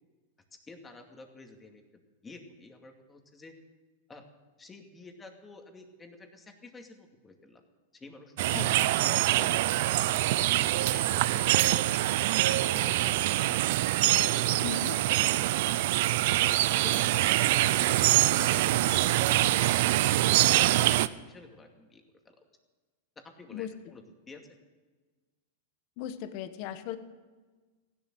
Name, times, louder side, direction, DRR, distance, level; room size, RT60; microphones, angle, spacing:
voice 1, 0.7-1.8 2.2-3.5 4.1-4.2 4.6-7.6 7.9-10.1 10.6-12.4 12.7-13.6 14.1-14.8 15.4-15.9 16.3-16.5 16.8-20.0 20.4-22.4 23.2-24.4, left 3 dB, 15° left, 4 dB, 2.4 m, -50 dB
sound 1, 8.4-21.1, right 15 dB, 60° right, 0.6 m, -25 dB
voice 2, 8.5-8.9 14.6-14.9 23.5-23.7 26.0-27.0, left 10 dB, 50° left, 11 dB, 1.3 m, -37 dB
16.0 x 11.5 x 7.8 m, 1.3 s
hypercardioid pair, 125°, 0 cm